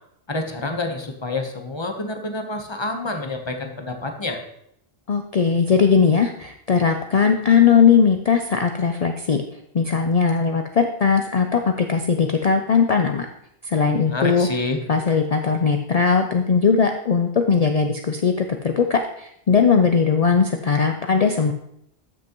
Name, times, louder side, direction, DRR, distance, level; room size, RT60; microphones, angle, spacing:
voice 1, 0.3-4.4 14.1-14.8, left 2 dB, 30° left, 4 dB, 1.0 m, -28 dB
voice 2, 5.1-9.4 9.7-13.3 13.6-14.5 14.9-21.5, left 6 dB, 45° left, 5 dB, 0.5 m, -19 dB
13.0 x 6.1 x 3.0 m, 0.75 s
omnidirectional pair, 1.0 m